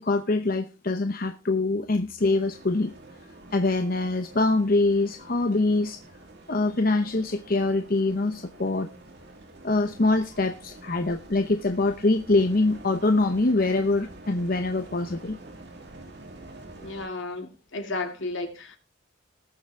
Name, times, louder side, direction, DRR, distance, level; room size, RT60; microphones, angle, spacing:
voice 1, 0.0-2.9 3.5-6.0 6.5-8.9 9.6-15.4, left 2 dB, 45° left, 0.8 m, -24 dB
sound 1, 2.2-17.1, right 2 dB, 55° right, 2.4 m, -47 dB
voice 2, 16.8-18.8, left 2 dB, 70° left, 2.5 m, -33 dB
19.5 x 7.0 x 3.4 m
head